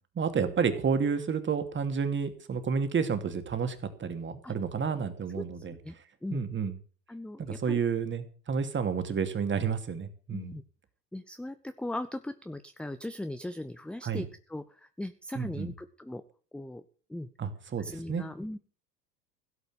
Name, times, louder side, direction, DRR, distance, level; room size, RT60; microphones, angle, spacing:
voice 1, 0.1-5.7 6.3-6.8 7.4-10.5 14.0-14.3 15.3-15.7 17.4-18.2, right 6 dB, 25° right, 9 dB, 2.7 m, -30 dB
voice 2, 7.1-7.8 10.3-10.6 11.1-16.2 16.5-16.8 17.1-17.3 17.8-18.6, left 1 dB, ahead, 11 dB, 0.9 m, -39 dB
16.5 x 8.1 x 7.8 m, 0.40 s
hypercardioid pair, 85°, 48 cm